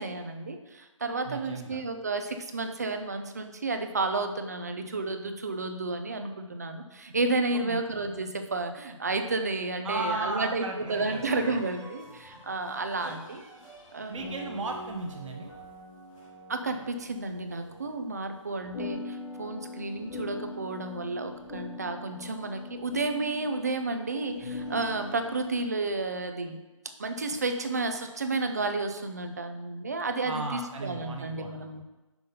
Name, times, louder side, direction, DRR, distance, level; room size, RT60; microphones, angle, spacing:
voice 1, 0.0-13.4 13.9-14.3 16.5-26.6 27.0-31.8, right 3 dB, 30° right, 7 dB, 0.4 m, -32 dB
voice 2, 1.3-1.8 7.5-7.8 9.8-11.3 13.0-13.1 14.1-15.5 30.2-31.7, right 2 dB, 70° right, 2 dB, 0.6 m, -35 dB
sound 1, 10.9-18.1 18.6-25.6, left 2 dB, 85° left, 2.3 m, -43 dB
5.8 x 3.8 x 5.3 m, 1.1 s
hypercardioid pair, 175°, 17 cm